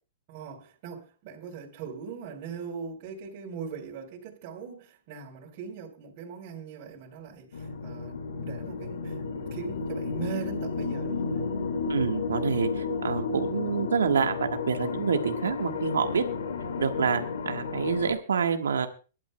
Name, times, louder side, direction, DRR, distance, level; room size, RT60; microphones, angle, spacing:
voice 1, 0.3-11.4, right 6 dB, 50° right, 3.7 m, -40 dB
sound 1, 7.5-18.1, left 4 dB, 80° left, 2.0 m, -32 dB
voice 2, 11.9-16.2 16.8-18.9, right 6 dB, 90° right, 1.4 m, -27 dB
23.5 x 12.0 x 2.2 m
hypercardioid pair, 130°, 0 cm